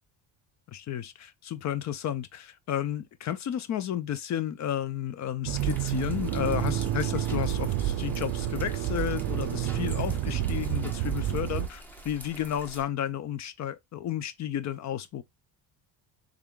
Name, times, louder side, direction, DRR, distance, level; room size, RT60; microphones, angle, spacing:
voice 1, 0.7-15.2, left 10 dB, 40° left, 0.5 m, -32 dB
sound 1, 5.5-12.8, right 2 dB, 5° left, 0.8 m, -46 dB
Accelerating revving vroom, 5.5-11.7, right 12 dB, 60° right, 0.5 m, -29 dB
3.6 x 3.5 x 2.2 m
cardioid pair, 130°, 42 cm